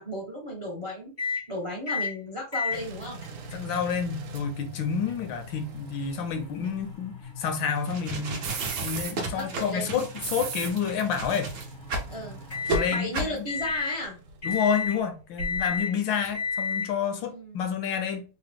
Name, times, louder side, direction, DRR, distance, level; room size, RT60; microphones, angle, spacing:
voice 1, 0.0-3.2 9.3-9.9 12.1-12.4 12.9-14.2 17.3-17.6, equal, 40° right, 0.4 m, -35 dB
sound 1, 1.2-1.4 1.9-2.1 2.5-13.1 13.5-14.0 14.4-15.0 15.4-15.9 16.3-16.9, left 5 dB, 55° left, 0.5 m, -35 dB
sound 2, 2.7-15.9 16.2-16.5, right 5 dB, 75° right, 1.3 m, -42 dB
voice 2, 3.5-8.5 8.8-11.5 12.7-13.5 14.4-18.2, left 7 dB, 75° left, 1.3 m, -29 dB
sound 3, 7.8-12.1 12.6-12.8 13.1-13.4, right 2 dB, 60° right, 0.8 m, -33 dB
3.6 x 2.1 x 3.4 m
omnidirectional pair, 2.2 m